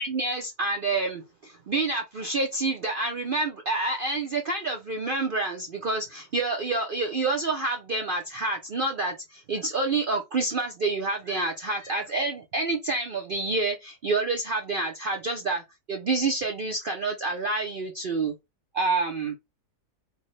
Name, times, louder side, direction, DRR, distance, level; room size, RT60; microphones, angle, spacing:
voice 1, 0.0-15.6 15.9-18.3 18.7-19.3, right 3 dB, 75° right, 0.4 m, -28 dB
5.0 x 2.1 x 3.2 m
omnidirectional pair, 1.7 m